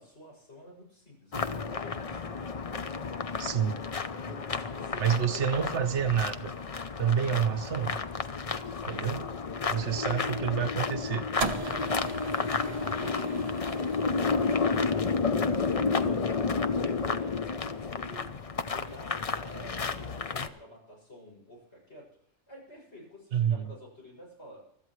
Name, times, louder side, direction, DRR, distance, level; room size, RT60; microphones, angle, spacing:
voice 1, 0.0-2.4 4.3-5.8 8.8-9.1 9.4-10.4 12.4-15.5 15.8-17.4 17.7-18.4 18.7-22.1 22.5-24.7, left 1 dB, 65° left, -2 dB, 7.1 m, -49 dB
sound 1, 1.3-20.5, left 4 dB, 35° left, 0.6 m, -31 dB
voice 2, 3.4-3.8 5.0-6.5 7.0-8.0 8.9-9.2 9.7-11.3 23.3-23.7, right 8 dB, 70° right, 12 dB, 1.1 m, -28 dB
sound 2, 11.4-17.7, right 4 dB, 35° right, 0.9 m, -40 dB
24.5 x 13.0 x 3.2 m, 0.65 s
omnidirectional pair, 1.2 m